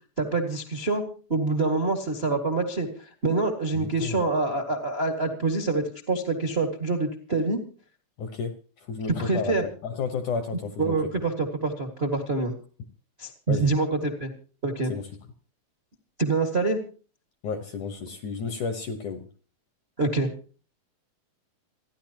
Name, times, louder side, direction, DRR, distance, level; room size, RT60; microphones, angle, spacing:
voice 1, 0.2-1.0 1.3-7.6 9.2-9.6 10.8-12.5 13.2-14.3 14.6-14.9 16.2-16.8 20.0-20.3, right 3 dB, 40° right, 4 dB, 0.8 m, -26 dB
voice 2, 3.7-4.2 8.2-9.6 9.8-11.0 13.5-13.7 14.9-15.1 17.4-19.2, left 5 dB, 65° left, 8 dB, 2.0 m, -32 dB
28.5 x 11.0 x 2.9 m, 0.40 s
omnidirectional pair, 4.8 m